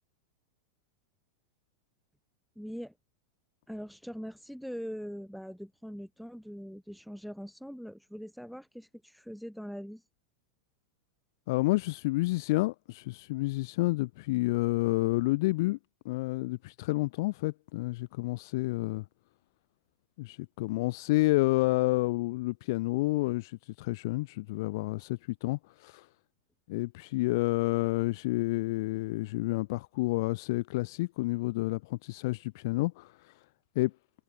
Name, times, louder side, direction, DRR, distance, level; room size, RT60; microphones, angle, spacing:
voice 1, 2.6-2.9 3.7-10.0, equal, ahead, 3.2 m, -42 dB
voice 2, 11.5-15.8 16.0-19.0 20.2-26.1 26.7-33.3 33.7-33.9, left 21 dB, 55° left, 1.2 m, -29 dB
figure-of-eight pair, 95°, 2 cm